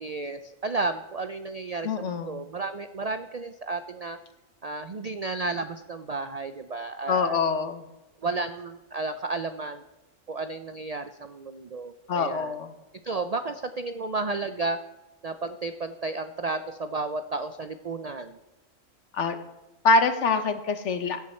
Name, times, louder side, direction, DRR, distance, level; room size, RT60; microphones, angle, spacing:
voice 1, 0.0-4.2 4.6-7.4 8.2-9.8 10.3-12.5 13.0-14.8 15.2-18.4, right 3 dB, 75° right, 9 dB, 0.3 m, -32 dB
voice 2, 1.8-2.4 7.1-7.8 12.1-12.7 19.1-19.4 19.8-21.2, left 4 dB, 60° left, 10 dB, 1.2 m, -24 dB
16.0 x 7.2 x 4.4 m, 1.0 s
omnidirectional pair, 1.5 m